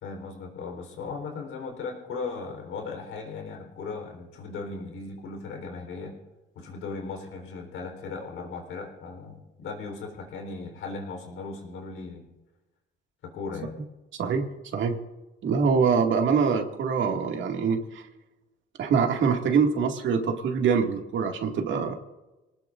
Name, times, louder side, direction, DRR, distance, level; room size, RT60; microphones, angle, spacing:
voice 1, 0.0-6.2 6.6-12.3 13.2-13.8, left 4 dB, 85° left, 3 dB, 3.9 m, -37 dB
voice 2, 15.4-18.0 18.8-21.9, right 6 dB, 75° right, 2 dB, 2.2 m, -24 dB
26.0 x 19.0 x 2.6 m, 1.1 s
cardioid pair, 90°, 20 cm